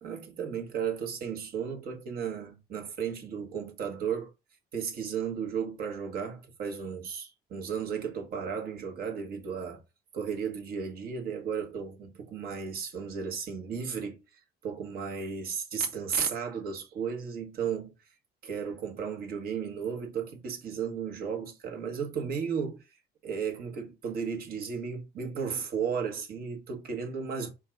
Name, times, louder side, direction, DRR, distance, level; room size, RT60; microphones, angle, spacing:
voice 1, 0.0-4.3 4.7-9.8 10.1-14.2 14.6-17.9 18.4-22.8 23.2-27.5, right 6 dB, 65° right, 1.3 m, -34 dB
4.6 x 2.4 x 4.5 m
cardioid pair, 110°, 17 cm